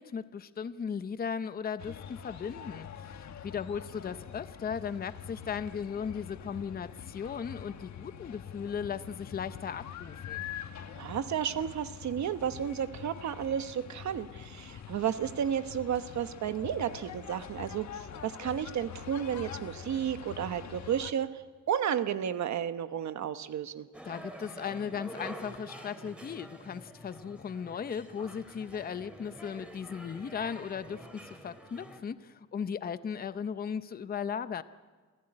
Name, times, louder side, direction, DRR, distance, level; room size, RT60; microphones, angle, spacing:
voice 1, 0.0-3.2 3.4-10.4 24.0-34.6, left 7 dB, 30° left, 13 dB, 0.6 m, -37 dB
sound 1, 1.8-21.1, left 8 dB, 60° left, 1.4 m, -45 dB
voice 2, 10.9-23.9, right 9 dB, 60° right, 10 dB, 1.0 m, -32 dB
sound 2, 23.9-32.0, right 1 dB, 5° right, 3.1 m, -47 dB
28.0 x 16.0 x 9.8 m, 1.5 s
cardioid pair, 150°, 31 cm